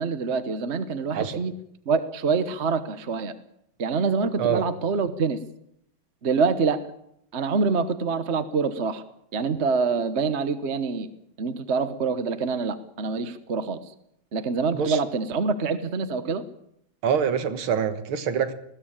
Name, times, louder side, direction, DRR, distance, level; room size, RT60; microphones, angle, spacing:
voice 1, 0.0-1.5 1.9-3.3 3.8-5.4 6.2-6.8 7.3-9.0 9.3-11.1 11.4-13.8 14.3-16.4, right 4 dB, 40° right, 11 dB, 1.2 m, -25 dB
voice 2, 17.0-18.5, right 7 dB, 80° right, 10 dB, 2.3 m, -25 dB
20.0 x 16.5 x 8.9 m, 0.73 s
omnidirectional pair, 2.3 m